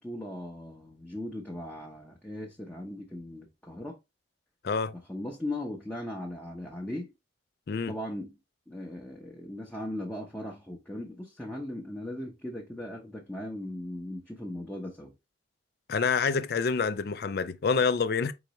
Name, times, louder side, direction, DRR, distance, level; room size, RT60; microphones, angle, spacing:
voice 1, 0.0-4.0 4.9-7.1 7.9-8.4 8.7-15.1, left 1 dB, 5° left, 0.7 m, -38 dB
voice 2, 15.9-18.3, left 5 dB, 55° left, 0.4 m, -27 dB
4.5 x 3.9 x 3.0 m
head